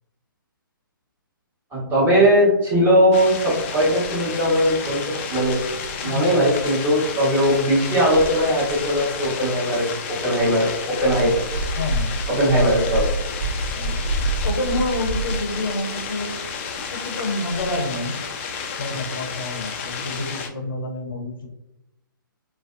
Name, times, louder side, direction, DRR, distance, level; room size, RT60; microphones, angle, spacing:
voice 1, 1.7-5.0 5.3-5.7 6.0-11.3 12.3-13.1, equal, 15° right, -6 dB, 1.0 m, -19 dB
sound 1, 3.1-20.5, left 6 dB, 35° left, 0.3 m, -32 dB
sound 2, 3.6-17.8, right 1 dB, 60° right, 0.6 m, -31 dB
voice 2, 11.8-12.1 13.7-14.0 14.4-16.3 16.9-18.2 18.8-21.5, left 2 dB, 70° left, 2 dB, 0.6 m, -28 dB
2.6 x 2.2 x 2.4 m, 0.88 s
figure-of-eight pair, 130°, 12 cm